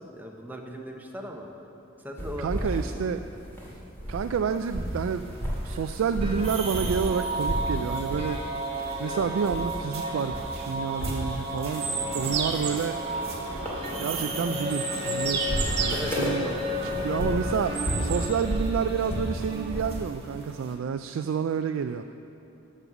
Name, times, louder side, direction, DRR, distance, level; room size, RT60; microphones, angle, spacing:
voice 1, 0.0-1.5 2.0-2.5 2.8-2.9 15.9-16.7, equal, 10° right, 1 dB, 0.8 m, -38 dB
sound 1, 2.2-4.4 4.7-7.1 7.4-8.4 8.7-9.9 10.2-20.0, equal, 10° left, 2.0 m, -33 dB
voice 2, 2.4-3.2 4.1-5.3 5.6-8.4 8.7-11.9 12.1-13.0 14.0-16.5 16.8-22.1, right 6 dB, 75° right, 8 dB, 0.3 m, -29 dB
sound 2, 4.5-20.7, equal, 30° right, 1.4 m, -34 dB
sound 3, 11.7-18.3, right 5 dB, 55° right, 0.9 m, -33 dB
13.5 x 5.5 x 6.1 m, 2.9 s
head